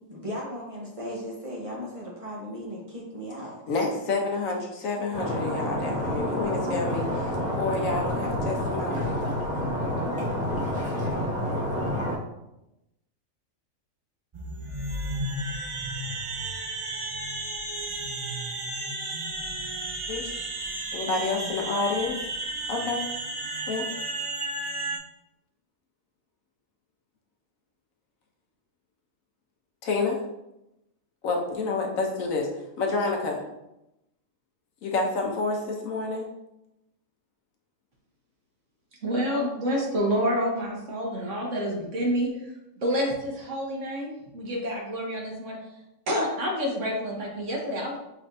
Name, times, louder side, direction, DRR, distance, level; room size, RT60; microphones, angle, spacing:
voice 1, 0.0-3.6, equal, 30° right, -3 dB, 0.9 m, -36 dB
voice 2, 3.7-7.3 7.6-9.1 20.1-20.3 20.9-22.2 22.7-23.0 23.7-23.9 29.8-30.2 31.2-32.4 32.8-33.4 34.8-36.2, left 3 dB, 75° left, 1 dB, 1.2 m, -28 dB
Stream, 5.1-12.2, equal, 5° right, 1.6 m, -28 dB
sound 1, 14.3-25.0, right 2 dB, 45° right, 0.4 m, -33 dB
voice 3, 39.0-42.5 42.8-45.6 46.1-48.0, equal, 65° right, -1 dB, 1.4 m, -28 dB
5.7 x 3.2 x 2.7 m, 0.89 s
omnidirectional pair, 1.4 m